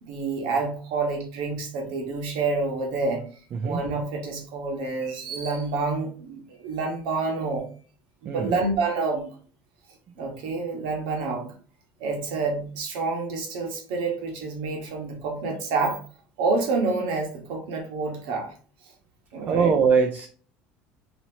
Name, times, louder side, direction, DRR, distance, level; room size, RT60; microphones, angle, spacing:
voice 1, 0.0-3.2 3.6-7.7 8.2-9.3 10.2-11.5 12.0-16.0 16.4-18.5 19.3-19.7, right 3 dB, 80° right, 3 dB, 1.4 m, -28 dB
voice 2, 3.5-3.8 8.2-8.6 19.4-20.3, right 6 dB, 40° right, 5 dB, 0.5 m, -22 dB
4.2 x 3.0 x 2.9 m, 0.42 s
cardioid pair, 135°, 5 cm